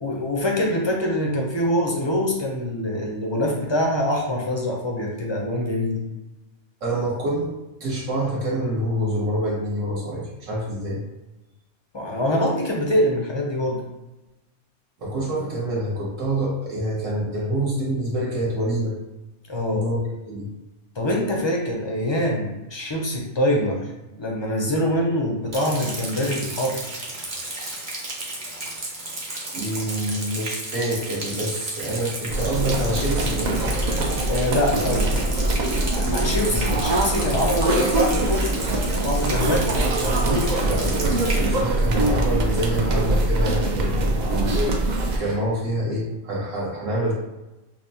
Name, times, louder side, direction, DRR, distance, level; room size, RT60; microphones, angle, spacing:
voice 1, 0.0-6.0 11.9-13.8 19.5-19.9 21.0-23.9 24.2-26.8 34.3-35.2 35.9-38.6 39.0-39.7, left 1 dB, 40° left, -1 dB, 0.4 m, -24 dB
voice 2, 6.8-7.5 7.8-11.0 15.0-18.9 19.7-20.0 20.3-20.5 29.5-33.5 36.3-36.8 40.2-47.1, right 1 dB, 85° right, -4 dB, 1.5 m, -27 dB
Rain, 25.5-41.4, right 2 dB, 40° right, 0.8 m, -33 dB
sound 1, 32.3-45.2, right 2 dB, 60° right, 0.4 m, -23 dB
5.7 x 2.1 x 2.7 m, 1.0 s
omnidirectional pair, 1.3 m